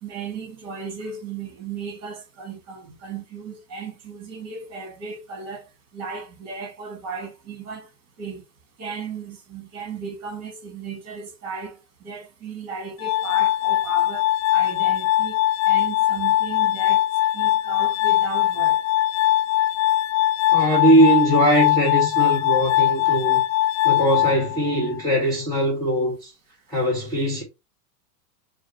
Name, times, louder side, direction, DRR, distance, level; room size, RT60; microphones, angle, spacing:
voice 1, 0.0-5.7 5.9-7.9 8.2-8.4 8.8-17.0 17.3-18.8, right 5 dB, 30° right, 2.4 m, -35 dB
Glass, 13.0-25.0, left 14 dB, 55° left, 0.5 m, -21 dB
voice 2, 20.5-23.4 23.8-26.3 26.7-27.4, right 1 dB, 5° left, 1.8 m, -20 dB
7.0 x 2.5 x 3.0 m
supercardioid pair, 145°, 49 cm